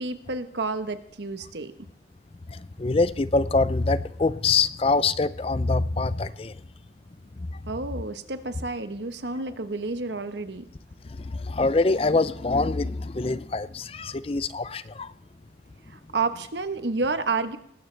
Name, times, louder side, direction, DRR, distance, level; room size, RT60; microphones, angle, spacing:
voice 1, 0.0-1.7 7.7-10.7 15.9-17.6, right 3 dB, 80° right, 10 dB, 1.1 m, -30 dB
voice 2, 2.5-6.5 11.2-15.1, left 3 dB, 35° left, 16 dB, 0.5 m, -24 dB
19.0 x 16.0 x 3.3 m, 0.68 s
head